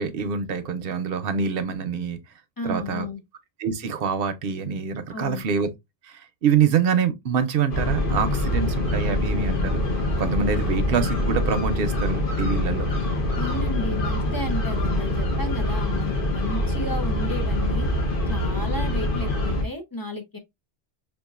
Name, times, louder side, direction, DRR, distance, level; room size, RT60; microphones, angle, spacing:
voice 1, 0.0-2.2 2.6-3.1 3.6-5.7 6.0-9.8 10.2-12.9, right 6 dB, 60° right, 0.8 m, -25 dB
voice 2, 2.6-3.2 5.1-5.4 13.4-17.9 18.3-20.4, left 2 dB, 25° left, 0.5 m, -32 dB
sound 1, 7.7-19.6, left 1 dB, 50° left, 1.1 m, -25 dB
5.4 x 2.4 x 2.3 m
omnidirectional pair, 1.2 m